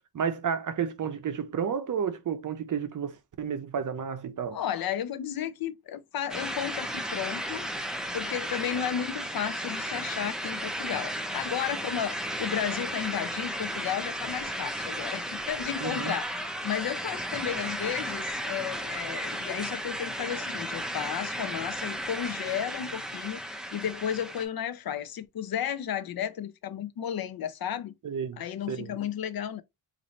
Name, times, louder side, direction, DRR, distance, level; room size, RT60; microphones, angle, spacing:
voice 1, 0.1-4.6 15.8-16.1 28.0-28.4 28.7-29.0, right 7 dB, 45° right, 0.6 m, -31 dB
voice 2, 4.5-7.7 8.1-16.3 16.6-27.9 28.4-29.6, left 9 dB, 55° left, 0.5 m, -33 dB
sound 1, 6.3-24.4, equal, ahead, 0.5 m, -34 dB
4.0 x 2.6 x 3.1 m
wide cardioid pair, 175°, 43 cm